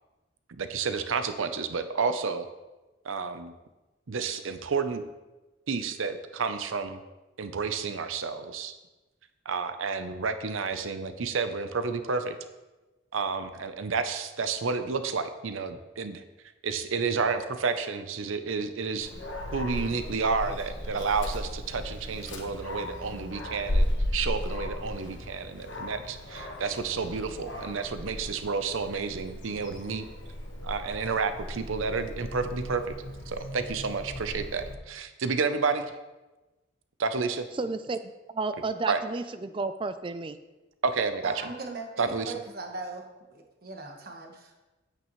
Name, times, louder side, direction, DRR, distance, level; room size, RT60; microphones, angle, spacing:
voice 1, 0.5-2.5 3.0-3.5 4.1-5.0 5.7-7.0 7.4-8.7 9.5-12.3 13.1-16.2 16.6-19.1 19.5-30.0 30.6-33.0 33.3-35.9 37.0-37.5 38.9-39.0 40.8-41.3 42.0-42.3, right 4 dB, 85° right, 9 dB, 0.7 m, -30 dB
Dog, 19.0-34.7, left 1 dB, 65° left, 1.3 m, -35 dB
voice 2, 37.5-38.0 38.3-40.4, right 3 dB, 25° right, 11 dB, 0.4 m, -32 dB
voice 3, 41.2-43.0 43.3-44.6, right 3 dB, 50° right, 2 dB, 1.3 m, -39 dB
9.0 x 8.9 x 3.1 m, 1.1 s
head